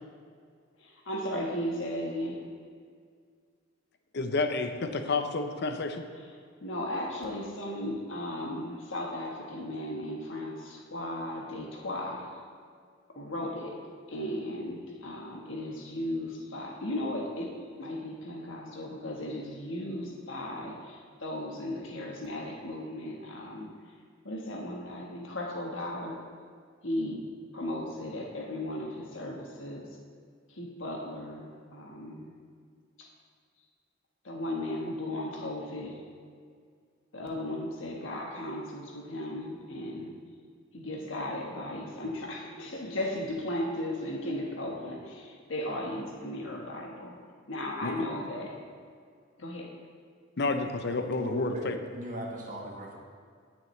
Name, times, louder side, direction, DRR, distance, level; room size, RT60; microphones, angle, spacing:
voice 1, 0.8-2.4 6.6-12.3 13.1-13.8 14.1-23.7 24.2-26.2 26.8-27.2 27.5-29.8 30.5-32.3 33.0-33.1 34.2-36.0 37.1-40.1 40.7-47.1 47.5-48.5 49.4-49.7, left 1 dB, 75° left, -1 dB, 1.4 m, -36 dB
voice 2, 4.1-6.0 47.8-48.1 50.4-51.8, left 3 dB, 55° left, 7 dB, 0.7 m, -30 dB
voice 3, 50.9-53.0, right 1 dB, 40° right, -1 dB, 1.6 m, -39 dB
16.5 x 6.1 x 3.2 m, 2.1 s
head